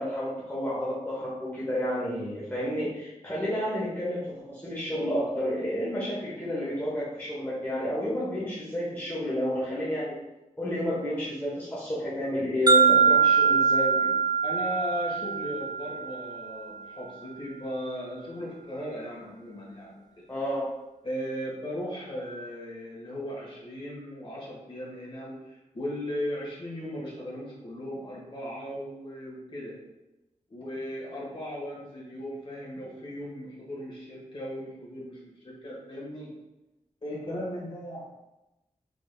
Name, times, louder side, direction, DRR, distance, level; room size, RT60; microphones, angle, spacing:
voice 1, 0.0-10.2 10.6-14.1 20.3-20.7, equal, 15° left, -8 dB, 1.0 m, -30 dB
sound 1, 12.7-16.6, right 5 dB, 30° right, 0.4 m, -23 dB
voice 2, 14.4-20.2 21.0-29.7 30.5-36.3 37.0-38.1, equal, 40° left, -4 dB, 1.4 m, -37 dB
4.9 x 3.5 x 2.2 m, 0.97 s
wide cardioid pair, 120°, 14 cm